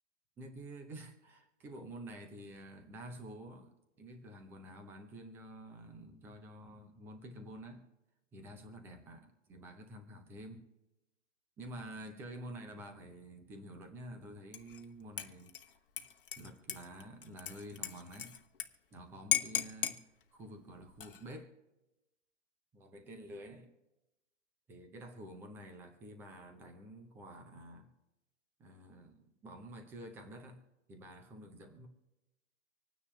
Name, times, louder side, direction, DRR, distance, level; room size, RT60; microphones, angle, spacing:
voice 1, 0.4-7.9 8.3-10.6 11.6-15.5 16.4-18.4 18.9-20.0 20.3-21.5 22.7-23.7 24.7-27.9 28.6-30.6 30.9-31.9, right 1 dB, 5° right, 5 dB, 0.6 m, -49 dB
Dishes pots and pans / Liquid, 14.5-14.8 15.2-18.7 18.9-19.0 19.3-20.0 20.9-21.4, left 9 dB, 45° left, 1.1 m, -37 dB
26.0 x 9.6 x 2.3 m, 1.0 s
figure-of-eight pair, 130°, 37 cm